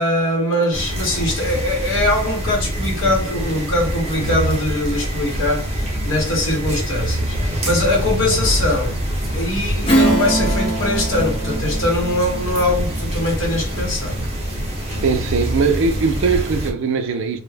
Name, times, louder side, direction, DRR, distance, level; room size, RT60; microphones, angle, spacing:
voice 1, 0.0-9.0 9.3-14.2, left 1 dB, 65° left, 0.9 m, -22 dB
sound 1, 0.7-16.7, equal, 30° right, 0.7 m, -25 dB
Strum, 9.9-14.8, right 1 dB, 25° left, 0.6 m, -24 dB
voice 2, 15.0-17.4, right 5 dB, 60° right, 0.4 m, -20 dB
2.2 x 2.0 x 3.2 m
head